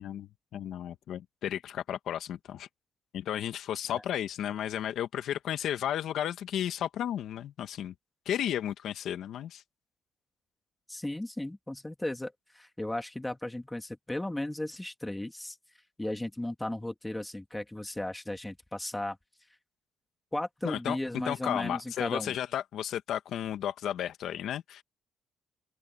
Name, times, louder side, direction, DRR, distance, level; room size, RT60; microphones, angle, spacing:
voice 1, 0.0-2.7 3.1-7.9 8.2-9.6 20.6-21.0 21.2-24.8, left 10 dB, 70° left, 1.5 m, -33 dB
voice 2, 10.9-15.6 16.0-19.2 20.3-22.4, left 1 dB, 10° left, 2.7 m, -35 dB
open air
supercardioid pair, 75°, 0 cm